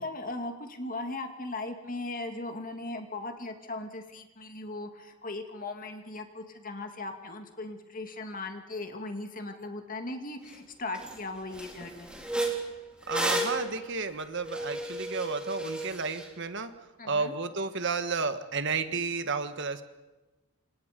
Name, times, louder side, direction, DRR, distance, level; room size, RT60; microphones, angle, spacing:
voice 1, 0.0-12.1 17.0-17.3, left 2 dB, 40° left, 5 dB, 2.3 m, -38 dB
Metal squeaking chair, 10.5-10.6 10.9-11.2 11.5-16.3, right 1 dB, 5° right, 3.6 m, -33 dB
voice 2, 13.1-16.7 17.0-19.8, right 4 dB, 55° right, 10 dB, 1.4 m, -32 dB
28.0 x 26.5 x 5.2 m, 1.1 s
head